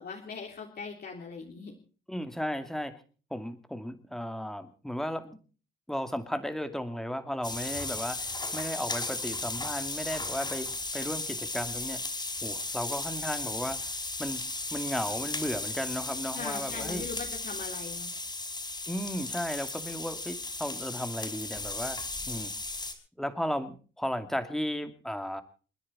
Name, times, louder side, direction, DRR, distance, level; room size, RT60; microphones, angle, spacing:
voice 1, 0.0-1.7 16.3-18.1, left 5 dB, 55° left, -1 dB, 3.3 m, -40 dB
voice 2, 2.1-2.9 3.3-5.4 5.9-12.0 12.4-13.8 14.2-17.0 18.9-22.0 22.3-22.5 23.2-25.4, equal, ahead, 8 dB, 2.4 m, -35 dB
sound 1, 7.4-22.9, left 2 dB, 20° left, 4.6 m, -35 dB
29.5 x 10.0 x 4.2 m, 0.38 s
cardioid pair, 90°, 20 cm